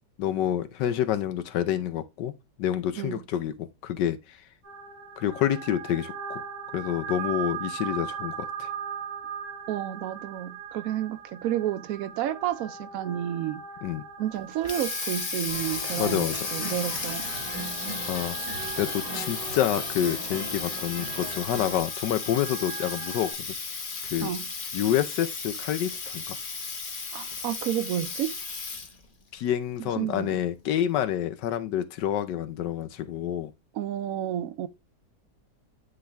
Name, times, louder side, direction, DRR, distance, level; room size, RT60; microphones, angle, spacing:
voice 1, 0.2-2.3 2.6-4.2 5.2-6.4 6.7-8.7 13.8-14.0 16.0-16.5 18.1-18.4 18.8-23.3 24.1-24.3 24.7-26.4 29.3-33.5, left 10 dB, 85° left, 1.4 m, -28 dB
sound 1, 4.6-23.3, right 7 dB, 40° right, 5.1 m, -40 dB
voice 2, 9.7-13.6 14.2-17.3 24.2-24.5 27.1-28.3 29.8-30.4 33.7-34.7, right 11 dB, 65° right, 0.9 m, -31 dB
Water tap faucet, 14.3-29.0, left 4 dB, 35° left, 1.0 m, -35 dB
sound 2, 15.5-21.8, right 1 dB, 20° right, 3.9 m, -39 dB
9.8 x 4.0 x 3.4 m
omnidirectional pair, 1.8 m